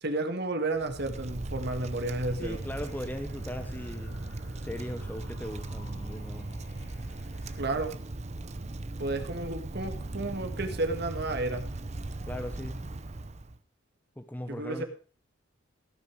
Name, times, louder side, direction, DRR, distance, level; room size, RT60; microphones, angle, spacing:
voice 1, 0.0-2.6 7.5-7.9 9.0-11.7 14.5-14.8, right 2 dB, 55° right, 6 dB, 1.8 m, -32 dB
Wind, 0.7-13.6, right 2 dB, 35° right, 0.8 m, -38 dB
sound 1, 1.7-7.6, left 2 dB, 75° left, 4.4 m, -54 dB
voice 2, 2.4-4.2 4.6-6.6 12.2-12.8 14.2-14.8, equal, 10° left, 7 dB, 0.9 m, -38 dB
16.5 x 6.6 x 6.3 m, 0.41 s
head